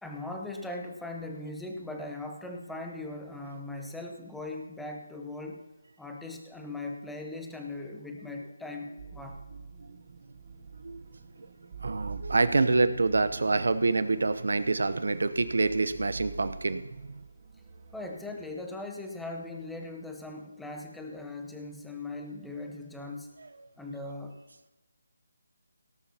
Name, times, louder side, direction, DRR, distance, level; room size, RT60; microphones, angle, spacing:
voice 1, 0.0-5.7 6.0-9.4 17.9-23.3 23.8-24.4, left 2 dB, ahead, 1 dB, 0.9 m, -39 dB
sound 1, 8.8-18.5, right 5 dB, 40° right, 1.7 m, -46 dB
voice 2, 11.8-17.3, right 3 dB, 80° right, 12 dB, 0.8 m, -27 dB
17.5 x 12.0 x 2.9 m, 1.1 s
figure-of-eight pair, 165°, 0 cm